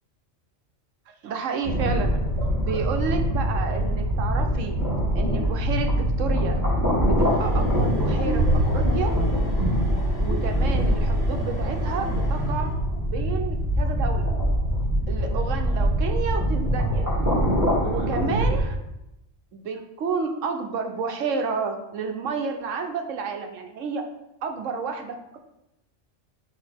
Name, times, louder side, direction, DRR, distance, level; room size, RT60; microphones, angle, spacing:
voice 1, 1.1-4.8 5.1-6.6 7.1-9.1 10.2-12.7 13.0-14.3 15.1-17.1 17.8-18.8 19.5-24.0 24.4-25.4, right 5 dB, 85° right, 4 dB, 1.1 m, -30 dB
sound 1, 1.6-18.6, equal, 15° right, 2.3 m, -23 dB
sound 2, 7.2-13.0, equal, 65° left, 2.3 m, -40 dB
6.5 x 4.4 x 3.5 m, 0.89 s
omnidirectional pair, 1.3 m